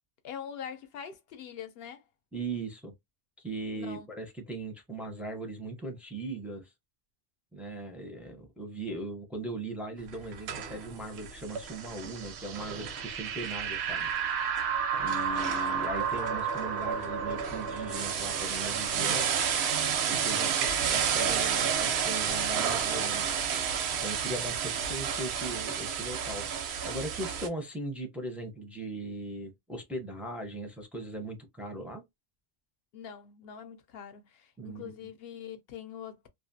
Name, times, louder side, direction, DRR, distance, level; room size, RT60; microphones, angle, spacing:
voice 1, 0.2-2.0 3.7-4.1 32.9-36.3, left 8 dB, 70° left, 0.8 m, -43 dB
voice 2, 2.3-2.9 3.4-6.7 7.5-14.1 15.0-19.3 20.1-20.6 20.8-23.3 23.9-32.0 34.6-35.1, right 2 dB, ahead, 0.4 m, -39 dB
sound 1, 10.1-27.5, right 7 dB, 80° right, 0.8 m, -30 dB
2.4 x 2.4 x 2.6 m
omnidirectional pair, 1.1 m